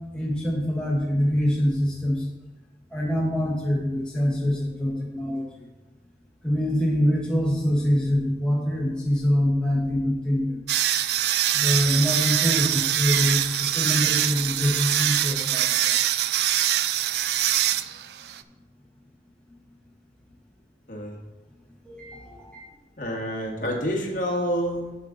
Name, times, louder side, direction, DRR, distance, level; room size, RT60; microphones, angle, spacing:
voice 1, 0.1-2.2 2.9-5.5 6.4-10.6 11.5-15.9 21.8-22.6, equal, 5° left, -4 dB, 0.9 m, -24 dB
sound 1, 10.7-18.4, right 12 dB, 60° right, 0.3 m, -24 dB
voice 2, 20.9-21.2 23.0-24.9, equal, 45° left, -1 dB, 1.5 m, -28 dB
8.1 x 7.0 x 3.8 m, 1.2 s
head